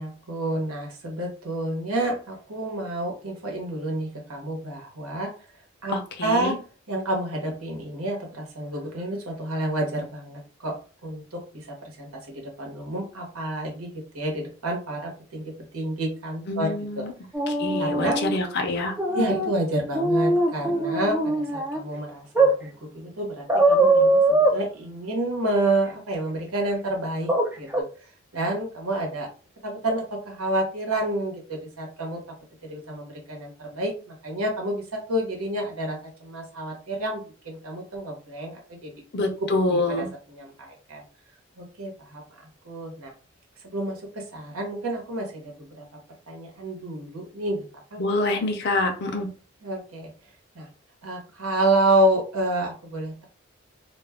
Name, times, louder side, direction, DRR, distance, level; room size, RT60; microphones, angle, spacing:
voice 1, 0.0-5.3 5.8-6.5 6.9-10.8 11.0-17.1 17.8-18.2 19.1-27.3 27.6-27.9 28.3-29.3 29.6-32.2 32.6-38.9 39.7-41.0 41.6-42.2 42.6-43.1 43.6-45.8 46.3-47.6 47.9-48.0 49.6-50.1 50.5-50.7 51.0-53.2, right 1 dB, 90° right, 0 dB, 1.0 m, -29 dB
voice 2, 5.9-6.6 16.5-17.1 17.5-18.9 19.3-19.4 39.1-40.1 48.0-49.3, left 2 dB, 50° left, 3 dB, 0.5 m, -26 dB
sound 1, 17.3-18.4 19.0-19.5 19.9-21.8 22.3-22.5 23.5-24.5 27.3-27.5 27.7-27.8, right 2 dB, 10° right, 0.3 m, -21 dB
2.3 x 2.2 x 3.4 m, 0.36 s
head